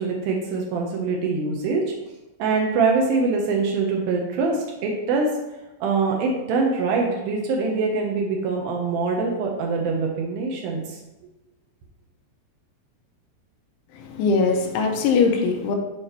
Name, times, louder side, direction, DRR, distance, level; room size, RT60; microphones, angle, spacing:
voice 1, 0.0-1.8 2.4-5.3 5.8-10.8, right 4 dB, 90° right, 0 dB, 2.1 m, -23 dB
voice 2, 13.9-15.8, left 4 dB, 80° left, 3 dB, 3.2 m, -21 dB
11.0 x 4.9 x 3.0 m, 1.0 s
omnidirectional pair, 5.5 m